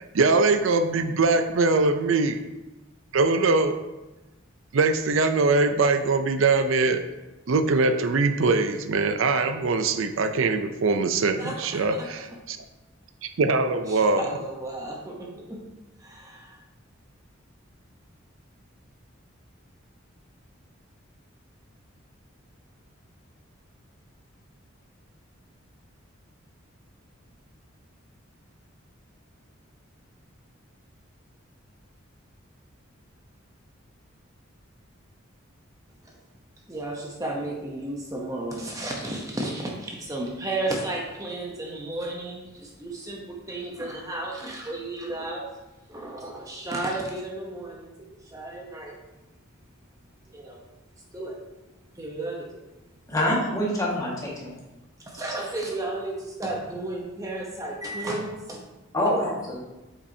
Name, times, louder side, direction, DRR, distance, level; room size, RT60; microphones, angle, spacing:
voice 1, 0.0-2.4 3.1-3.8 4.7-7.0 7.5-12.6 13.2-14.3, right 3 dB, 70° right, 8 dB, 0.5 m, -22 dB
voice 2, 11.4-12.2 13.9-15.6 16.0-16.6 36.0-36.1 36.7-45.5 45.9-49.0 50.3-50.6 51.1-51.4 51.9-52.6 55.1-58.6, right 2 dB, 15° right, -1 dB, 0.8 m, -33 dB
voice 3, 53.1-54.5 58.9-59.6, left 1 dB, 15° left, -5 dB, 1.6 m, -25 dB
8.3 x 5.9 x 2.7 m, 1.1 s
head